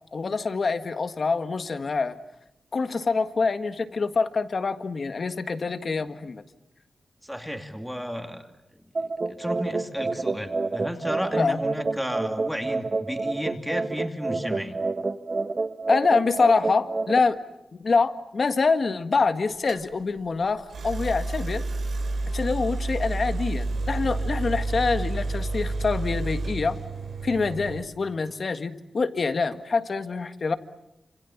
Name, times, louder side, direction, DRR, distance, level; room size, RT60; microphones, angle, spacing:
voice 1, 0.1-2.2 2.7-6.4 11.4-11.6 15.9-17.4 17.8-21.6 22.3-26.8 27.2-30.6, left 4 dB, 50° left, 9 dB, 1.7 m, -25 dB
voice 2, 7.2-8.4 9.0-14.8, equal, ahead, 4 dB, 2.7 m, -33 dB
sound 1, 8.9-17.2, right 3 dB, 40° right, 1.3 m, -29 dB
sound 2, 19.7-19.8 20.7-27.8, right 2 dB, 80° right, 4.2 m, -30 dB
29.5 x 27.0 x 7.3 m, 0.90 s
wide cardioid pair, 140°, 0 cm